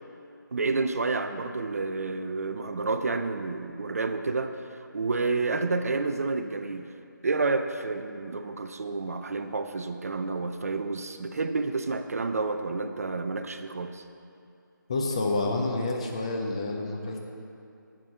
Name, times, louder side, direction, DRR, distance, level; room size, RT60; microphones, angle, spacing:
voice 1, 0.5-4.7 4.9-6.9 7.2-14.0, right 3 dB, 45° right, 8 dB, 0.4 m, -29 dB
voice 2, 14.9-17.2, left 2 dB, 15° left, 1 dB, 0.5 m, -28 dB
7.8 x 7.4 x 4.7 m, 2.6 s
figure-of-eight pair, 160°, 11 cm